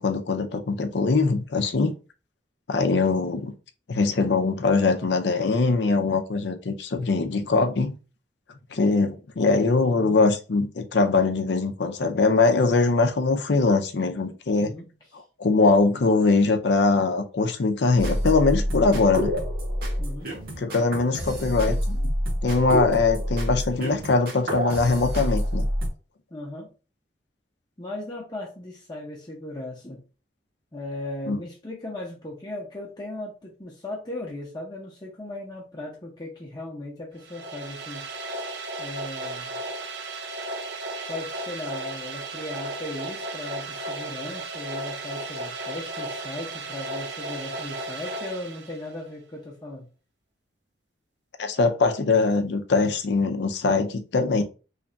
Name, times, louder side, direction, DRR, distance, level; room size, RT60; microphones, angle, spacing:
voice 1, 0.0-1.9 2.7-3.5 3.9-8.0 8.7-14.7 15.4-19.3 20.6-22.1 22.4-25.7 31.3-31.4 51.4-54.4, left 3 dB, 70° left, 0.5 m, -22 dB
voice 2, 9.8-10.2 14.6-14.9 20.0-20.3 21.2-21.8 26.3-26.7 27.8-30.0 30.7-38.1 38.8-39.6 41.1-49.9, left 1 dB, 20° left, 0.7 m, -37 dB
sound 1, 18.0-25.9, equal, 55° right, 1.1 m, -27 dB
sound 2, 37.2-49.1, right 2 dB, 70° right, 0.6 m, -35 dB
3.2 x 2.3 x 3.8 m
head